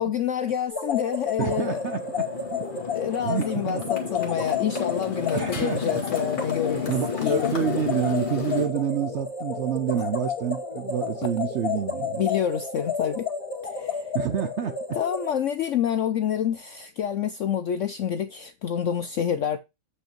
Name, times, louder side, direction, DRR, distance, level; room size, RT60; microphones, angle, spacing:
voice 1, 0.0-1.8 2.9-6.9 7.2-7.5 9.9-10.0 11.2-11.3 12.2-13.3 13.6-14.1 14.9-19.6, left 9 dB, 80° left, 0.6 m, -27 dB
sound 1, 0.7-15.3, left 5 dB, 55° left, 2.1 m, -31 dB
Motorcycle, 1.4-8.7, left 6 dB, 35° left, 1.8 m, -33 dB
voice 2, 1.4-2.2 3.2-3.8 5.3-6.0 6.9-12.2 14.1-14.7, right 9 dB, 70° right, 0.6 m, -28 dB
8.2 x 5.3 x 4.4 m
omnidirectional pair, 1.9 m